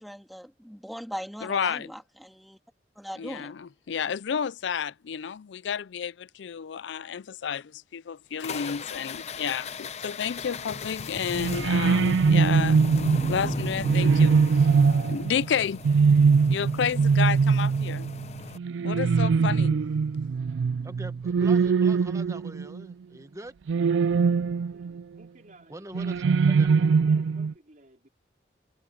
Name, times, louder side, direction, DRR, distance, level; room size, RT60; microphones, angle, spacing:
voice 1, 0.0-2.6 3.0-3.5, equal, ahead, 2.8 m, -40 dB
voice 2, 1.4-1.9 3.2-12.8 13.3-14.7 15.1-15.8 16.5-18.1 18.8-19.8, left 7 dB, 80° left, 0.4 m, -31 dB
sound 1, 8.4-18.6, left 3 dB, 35° left, 0.6 m, -36 dB
sound 2, 11.3-22.9 23.7-25.0 25.9-27.5, right 5 dB, 80° right, 0.4 m, -22 dB
voice 3, 20.8-23.5 25.7-26.7, right 1 dB, 15° right, 1.0 m, -43 dB
voice 4, 24.7-26.5 26.8-28.1, right 1 dB, 45° right, 4.5 m, -56 dB
head